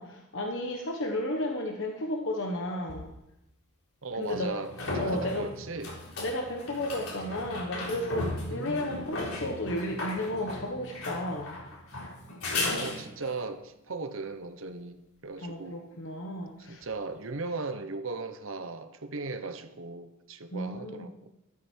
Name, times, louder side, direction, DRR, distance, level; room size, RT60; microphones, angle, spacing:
voice 1, 0.0-3.1 4.1-4.5 5.0-5.5 6.2-11.6 15.4-16.8 20.5-21.1, left 1 dB, 60° left, 2 dB, 1.3 m, -33 dB
sound 1, 2.9-3.0 4.3-13.4 16.8-16.9, left 2 dB, 80° left, 4.0 m, -36 dB
voice 2, 4.0-6.0 8.5-9.0 12.7-15.8 16.7-21.1, right 3 dB, 65° right, 9 dB, 1.1 m, -37 dB
13.0 x 12.5 x 4.6 m, 0.87 s
head